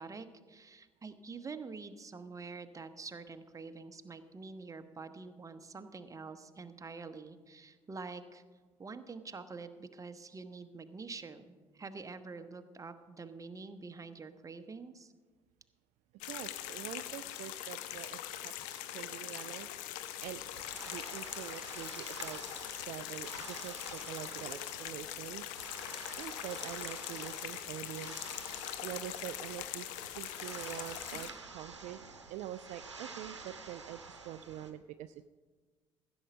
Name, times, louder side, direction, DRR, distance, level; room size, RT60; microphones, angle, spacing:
voice 1, 0.0-8.4 8.8-15.1, right 4 dB, 20° right, 9 dB, 0.9 m, -46 dB
sound 1, 16.2-31.3, left 13 dB, 65° left, 0.7 m, -42 dB
voice 2, 16.2-20.4 20.9-25.7 26.2-28.2 28.8-32.0 32.3-35.3, right 12 dB, 55° right, 12 dB, 0.4 m, -45 dB
sound 2, 20.2-34.7, right 4 dB, 85° right, 0.8 m, -50 dB
15.0 x 7.0 x 5.3 m, 1.4 s
figure-of-eight pair, 50°, 15 cm